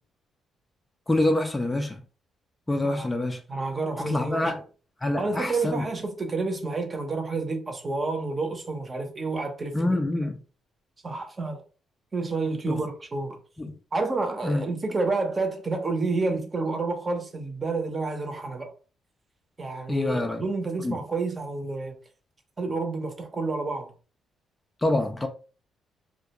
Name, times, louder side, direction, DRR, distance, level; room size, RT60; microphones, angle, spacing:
voice 1, 1.1-2.0 2.7-3.4 4.0-4.6 5.0-5.9 9.7-10.4 12.7-12.8 13.6-13.7 14.4-14.7 19.9-20.4 20.8-20.9 24.8-25.3, left 1 dB, 15° left, 0.4 m, -26 dB
voice 2, 3.5-4.5 5.2-10.0 11.0-11.6 12.1-13.4 13.9-18.7 19.6-22.0 22.6-23.9, right 3 dB, 30° right, 0.7 m, -29 dB
2.3 x 2.1 x 2.9 m
cardioid pair, 90°, 0 cm